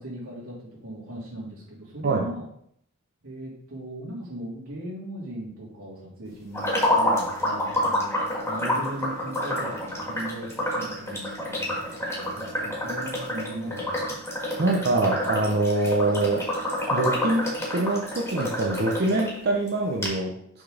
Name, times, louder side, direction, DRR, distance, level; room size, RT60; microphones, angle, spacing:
voice 1, 0.0-2.5 3.2-8.2 8.4-14.2, right 1 dB, 80° right, -5 dB, 3.0 m, -38 dB
sound 1, 6.5-19.3 19.7-19.8 20.0-20.1, left 1 dB, 10° left, 1.8 m, -28 dB
voice 2, 14.6-16.4 16.9-20.3, right 2 dB, 50° right, 0 dB, 0.7 m, -24 dB
6.1 x 4.0 x 5.1 m, 0.68 s
head